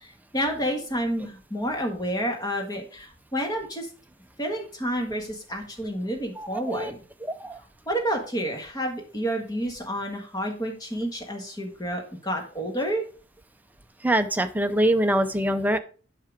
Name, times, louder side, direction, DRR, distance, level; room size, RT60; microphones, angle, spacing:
voice 1, 0.0-3.9 4.4-7.0 7.9-13.0, equal, 20° left, 2 dB, 1.7 m, -29 dB
voice 2, 6.4-6.9 7.2-7.6 14.0-15.8, right 1 dB, 10° right, 8 dB, 0.6 m, -24 dB
8.8 x 5.8 x 3.5 m, 0.38 s
head